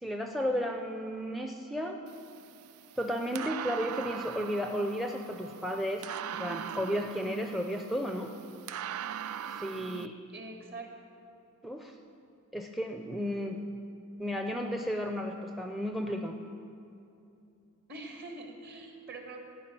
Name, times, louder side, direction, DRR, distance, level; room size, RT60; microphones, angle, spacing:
voice 1, 0.0-2.0 3.0-8.3 9.5-10.2 11.6-11.9 12.5-13.6 14.2-16.4, equal, ahead, 4 dB, 0.5 m, -33 dB
sound 1, 2.1-10.1, right 9 dB, 80° right, 0.4 m, -41 dB
voice 2, 10.3-10.9 17.9-19.4, right 2 dB, 50° right, 2 dB, 1.7 m, -44 dB
15.0 x 5.5 x 9.8 m, 2.6 s
head